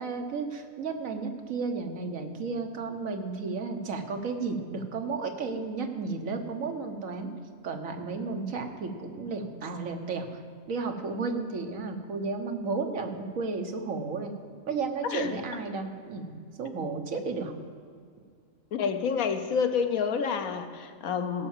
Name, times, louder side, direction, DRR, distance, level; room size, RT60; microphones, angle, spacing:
voice 1, 0.0-7.3 7.6-10.4 10.7-14.3 14.7-16.3 16.6-17.5, right 4 dB, 75° right, 5 dB, 1.5 m, -33 dB
voice 2, 18.7-21.5, left 6 dB, 90° left, 8 dB, 1.3 m, -28 dB
17.0 x 5.8 x 7.3 m, 2.1 s
omnidirectional pair, 1.4 m